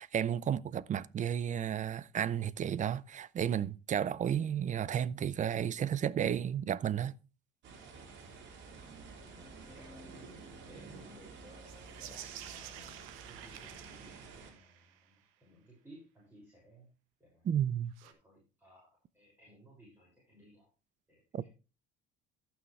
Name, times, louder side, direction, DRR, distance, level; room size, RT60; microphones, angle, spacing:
voice 1, 0.0-7.1 17.4-17.9 21.3-21.5, right 9 dB, 40° right, 0.5 m, -32 dB
sound 1, 7.6-14.5, right 4 dB, 65° right, 3.4 m, -51 dB
voice 2, 8.6-8.9 9.3-10.1 10.6-16.9 17.2-17.4 18.0-20.7 21.1-21.5, equal, 10° right, 6.1 m, -59 dB
sound 2, 9.2-12.8, left 1 dB, 15° left, 2.6 m, -59 dB
sound 3, 11.6-15.1 17.9-18.1, right 11 dB, 90° right, 1.4 m, -50 dB
14.5 x 6.3 x 3.3 m
cardioid pair, 105°, 20 cm